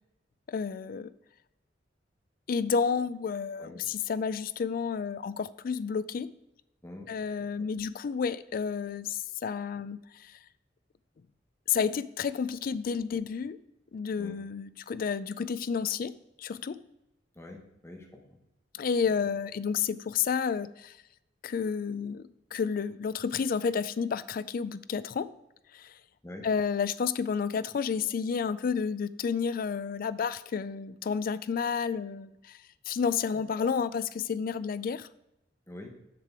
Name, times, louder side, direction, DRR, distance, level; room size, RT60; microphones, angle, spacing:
voice 1, 0.5-1.1 2.5-6.3 7.1-10.4 11.7-13.6 13.9-16.1 16.4-16.8 18.7-20.9 21.4-25.3 25.7-25.9 26.4-32.6 32.9-35.1, left 6 dB, 50° left, 15 dB, 0.4 m, -31 dB
voice 2, 17.3-18.2 19.2-19.3 26.2-26.5 33.3-33.7 35.7-35.9, left 1 dB, 15° left, 2 dB, 1.3 m, -45 dB
6.7 x 6.6 x 4.7 m, 0.87 s
head